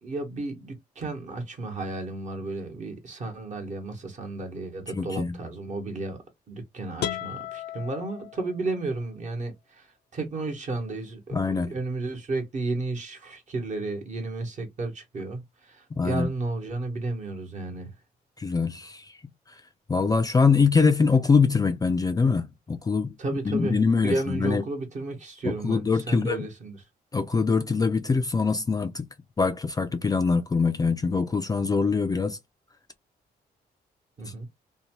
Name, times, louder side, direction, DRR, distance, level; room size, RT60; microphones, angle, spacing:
voice 1, 0.0-6.2 6.5-9.9 10.1-17.9 23.2-26.8 34.2-34.5, right 2 dB, 45° right, 1.1 m, -33 dB
voice 2, 4.9-5.4 11.3-11.7 15.9-16.3 18.4-19.1 19.9-23.1 23.5-24.6 25.4-26.4 27.1-29.1 29.4-32.4, left 5 dB, 20° left, 0.3 m, -23 dB
sound 1, 7.0-8.9, left 10 dB, 85° left, 0.6 m, -35 dB
2.7 x 2.2 x 2.9 m
cardioid pair, 100°, 17 cm